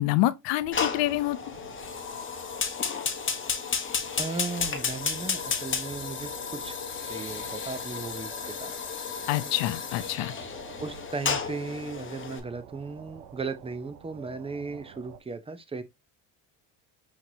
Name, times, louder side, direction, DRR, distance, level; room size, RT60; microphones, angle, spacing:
voice 1, 0.0-1.5 9.3-10.3, left 16 dB, 70° left, 0.7 m, -27 dB
sound 1, 0.6-15.2, right 9 dB, 75° right, 0.8 m, -48 dB
Fire, 0.7-12.4, left 6 dB, 25° left, 1.0 m, -33 dB
voice 2, 4.2-6.8 7.1-8.7 10.8-15.8, right 4 dB, 15° right, 0.6 m, -36 dB
5.6 x 3.2 x 2.7 m
supercardioid pair, 85°, 45 cm